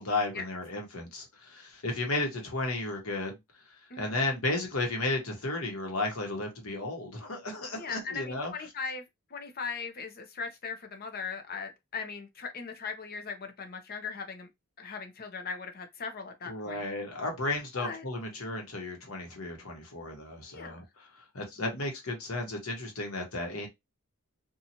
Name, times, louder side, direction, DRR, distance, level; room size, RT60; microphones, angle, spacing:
voice 1, 0.0-3.4 4.0-8.5 16.5-20.8 21.3-23.7, left 2 dB, 80° left, 1.1 m, -33 dB
voice 2, 7.8-9.0 9.3-14.5 14.8-16.8 17.7-18.0 20.5-20.9, left 5 dB, 45° left, 0.6 m, -39 dB
2.8 x 2.4 x 2.8 m
head